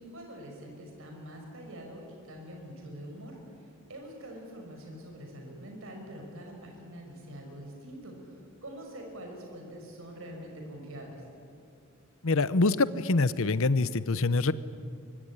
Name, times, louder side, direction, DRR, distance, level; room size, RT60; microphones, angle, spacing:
voice 1, 0.0-3.4 3.9-8.1 8.6-11.2, equal, 70° right, 2 dB, 5.6 m, -44 dB
voice 2, 12.2-14.5, left 3 dB, 70° left, 15 dB, 0.9 m, -25 dB
24.0 x 23.5 x 10.0 m, 2.4 s
head